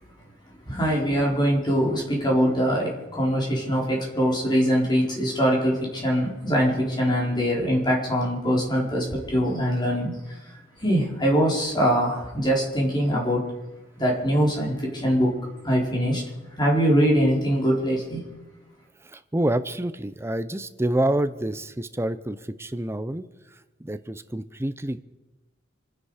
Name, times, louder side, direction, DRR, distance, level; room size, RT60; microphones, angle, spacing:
voice 1, 0.6-10.5 10.8-13.4 14.0-15.3 15.6-16.2 16.6-18.2, equal, 25° left, 4.4 m, -23 dB
voice 2, 19.1-23.2 23.8-25.0, right 1 dB, 15° right, 0.6 m, -27 dB
27.5 x 10.0 x 5.0 m
head